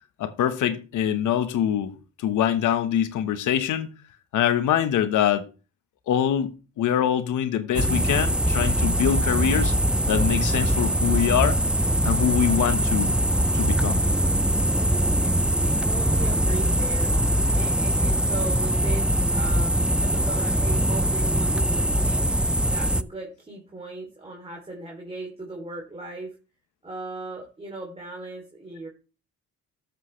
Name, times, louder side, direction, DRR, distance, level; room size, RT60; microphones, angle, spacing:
voice 1, 0.2-3.9 4.3-5.5 6.1-6.5 6.8-9.7 10.0-11.6 12.0-13.2 13.5-14.0, left 10 dB, 80° left, 1.4 m, -24 dB
sound 1, 7.7-23.0, right 1 dB, 5° right, 0.4 m, -22 dB
voice 2, 14.9-17.1 17.5-22.2 22.7-26.3 26.8-28.9, right 2 dB, 20° right, 3.2 m, -38 dB
13.0 x 7.7 x 3.3 m
cardioid pair, 90°, 30 cm